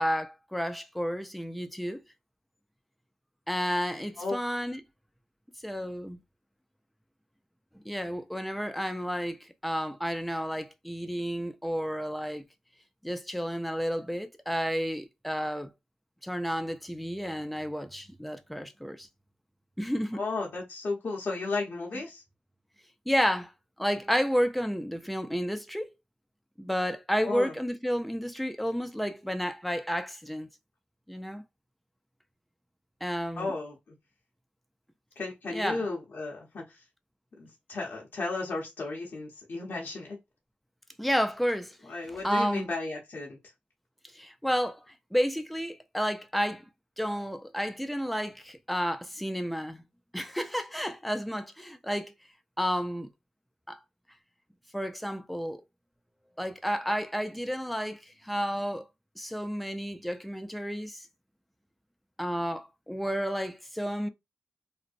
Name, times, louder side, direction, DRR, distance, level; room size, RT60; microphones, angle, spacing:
voice 1, 0.0-2.0 3.5-4.8 5.6-6.2 7.8-12.4 13.0-15.7 16.2-19.1 19.8-20.2 23.1-23.5 23.8-25.9 26.6-30.5 31.1-31.4 33.0-33.5 35.5-35.8 41.0-41.8 42.2-42.7 44.1-44.9 45.1-46.7 47.0-49.8 50.1-52.1 52.6-53.1 53.7-53.8 54.7-55.6 56.4-58.8 59.2-61.1 62.2-64.1, equal, ahead, 0.5 m, -31 dB
voice 2, 20.1-22.2 27.2-27.5 33.3-34.0 35.2-36.8 37.4-40.2 41.8-43.4, left 3 dB, 65° left, 0.7 m, -34 dB
2.5 x 2.0 x 2.5 m
cardioid pair, 40°, 4 cm